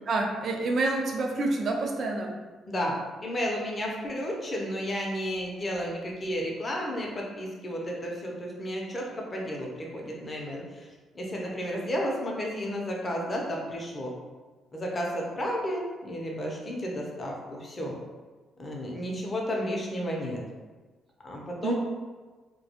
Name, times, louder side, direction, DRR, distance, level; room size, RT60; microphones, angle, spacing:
voice 1, 0.1-2.3 21.6-21.7, right 2 dB, 55° right, 2 dB, 0.4 m, -28 dB
voice 2, 2.7-10.9 11.1-14.1 14.7-18.0 18.6-20.4 21.2-21.7, equal, 30° left, -1 dB, 0.6 m, -32 dB
2.3 x 2.2 x 2.8 m, 1.3 s
cardioid pair, 90°, 0 cm